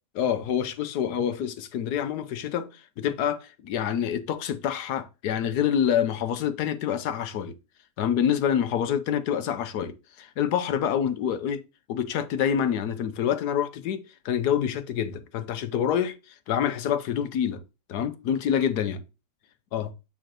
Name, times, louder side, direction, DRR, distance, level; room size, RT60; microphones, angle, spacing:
voice 1, 0.1-7.6 8.0-11.6 11.9-16.2 16.5-17.6 17.9-19.0 19.7-19.9, left 9 dB, 75° left, 1.3 m, -27 dB
8.8 x 4.3 x 3.0 m
omnidirectional pair, 1.7 m